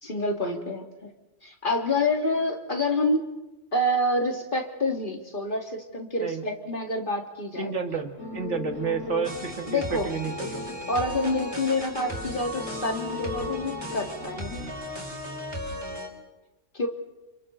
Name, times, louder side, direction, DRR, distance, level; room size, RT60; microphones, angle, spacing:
voice 1, 0.0-1.1 1.4-3.3 3.7-7.7 9.7-10.1 10.9-14.5 16.7-16.9, left 1 dB, 45° left, 2 dB, 2.5 m, -27 dB
voice 2, 7.6-10.7, right 5 dB, 75° right, 4 dB, 2.2 m, -30 dB
sound 1, 8.2-14.7, left 4 dB, 75° left, 7.7 m, -39 dB
sound 2, 9.2-16.1, equal, 20° right, 4.5 m, -36 dB
29.0 x 28.5 x 4.0 m, 1.1 s
omnidirectional pair, 1.2 m